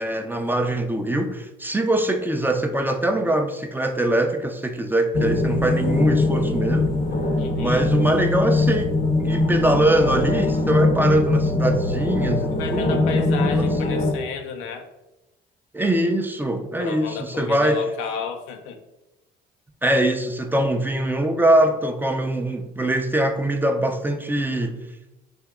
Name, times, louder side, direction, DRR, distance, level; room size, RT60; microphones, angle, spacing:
voice 1, 0.0-6.9 7.6-13.0 13.4-13.5 15.7-17.8 19.8-24.8, right 1 dB, 10° right, 5 dB, 0.4 m, -22 dB
sound 1, 5.1-14.1, left 2 dB, 45° left, 0.7 m, -22 dB
voice 2, 7.4-7.9 12.5-14.9 16.8-18.8, left 5 dB, 90° left, 6 dB, 0.5 m, -32 dB
3.4 x 2.8 x 3.5 m, 0.97 s
supercardioid pair, 70°, 20 cm